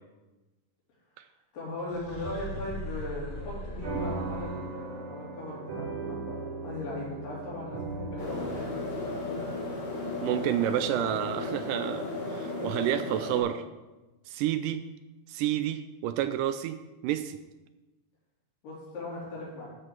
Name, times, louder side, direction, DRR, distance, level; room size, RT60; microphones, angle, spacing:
voice 1, 1.5-8.8 18.6-19.7, left 1 dB, 75° left, -6 dB, 5.3 m, -38 dB
sound 1, 1.9-4.9, left 1 dB, 35° left, 3.7 m, -40 dB
sound 2, 3.8-12.6, right 3 dB, 45° right, 2.3 m, -39 dB
sound 3, 8.2-13.4, left 2 dB, 60° left, 3.7 m, -35 dB
voice 2, 10.2-13.6 14.3-14.8 15.3-16.8 17.0-17.4, right 12 dB, 80° right, 11 dB, 2.0 m, -29 dB
12.5 x 5.1 x 6.0 m, 1.1 s
omnidirectional pair, 4.0 m